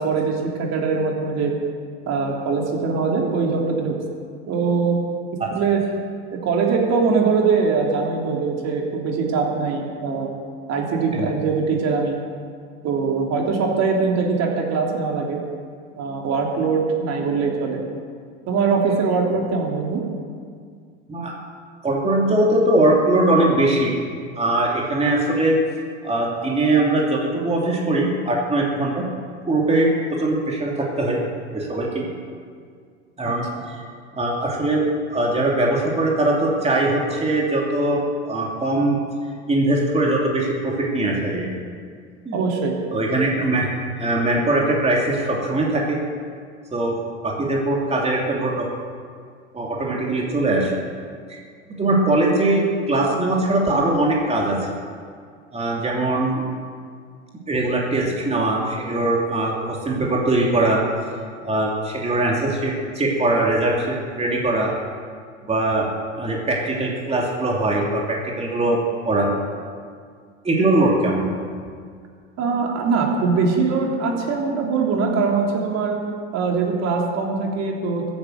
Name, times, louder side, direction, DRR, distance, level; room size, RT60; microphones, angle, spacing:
voice 1, 0.0-1.5 2.1-3.9 4.5-5.0 5.5-5.8 6.3-10.3 10.7-12.2 12.8-15.4 15.9-17.8 18.5-20.0 33.2-33.3 42.3-42.7 72.4-76.0 76.3-78.1, right 4 dB, 45° right, 0 dB, 3.3 m, -22 dB
voice 2, 21.8-24.0 24.4-25.6 26.0-29.0 29.5-31.2 31.5-32.1 33.2-33.8 34.1-34.8 35.1-39.0 39.5-41.5 42.2-42.4 42.9-43.7 44.0-46.0 46.7-46.9 47.2-48.7 49.5-50.7 51.8-54.6 55.5-56.4 57.5-60.8 61.4-64.7 65.5-65.9 66.2-69.3 70.4-71.3, right 2 dB, 15° right, -2 dB, 3.0 m, -21 dB
15.5 x 8.9 x 7.8 m, 2.1 s
hypercardioid pair, 85°, 37 cm